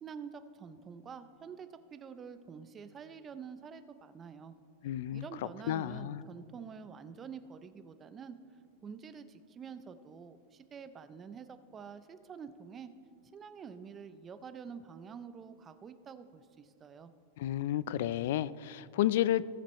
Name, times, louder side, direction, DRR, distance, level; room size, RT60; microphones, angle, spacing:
voice 1, 0.0-4.5 5.1-8.4 8.8-12.9 13.3-17.1, right 6 dB, 15° right, 11 dB, 0.4 m, -47 dB
voice 2, 4.8-5.3 5.7-6.2 17.4-19.4, left 12 dB, 55° left, 19 dB, 0.3 m, -31 dB
18.5 x 7.3 x 3.1 m, 2.4 s
supercardioid pair, 165°, 0 cm